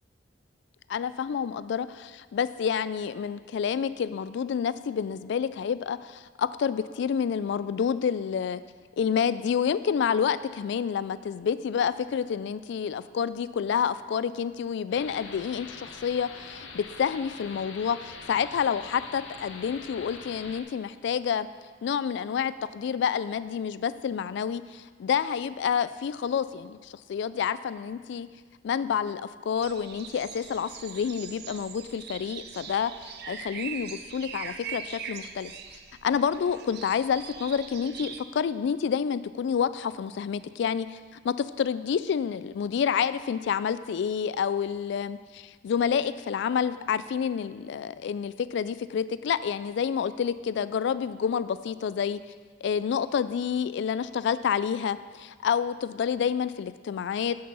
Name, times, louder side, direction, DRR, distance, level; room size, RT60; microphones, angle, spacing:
voice 1, 0.9-8.6 9.0-21.5 21.8-28.3 28.6-35.5 36.0-41.0 41.2-52.2 52.6-57.4, left 7 dB, 65° left, 16 dB, 0.3 m, -28 dB
sound 1, 14.9-20.6, left 4 dB, 85° left, 0.9 m, -44 dB
sound 2, 29.6-38.2, right 7 dB, 60° right, 0.5 m, -41 dB
7.9 x 6.7 x 5.4 m, 1.5 s
head